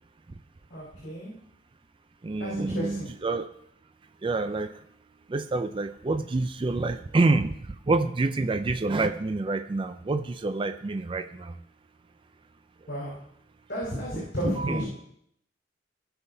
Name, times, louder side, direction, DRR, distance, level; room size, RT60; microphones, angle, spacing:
voice 1, 0.7-1.3 2.4-3.1 12.9-13.2 13.7-14.8, equal, 65° left, -7 dB, 4.1 m, -32 dB
voice 2, 2.2-3.5 4.2-4.7 5.3-7.5 7.9-11.6 14.6-14.8, right 3 dB, 30° right, 8 dB, 0.4 m, -27 dB
17.0 x 5.9 x 2.7 m, 0.70 s
head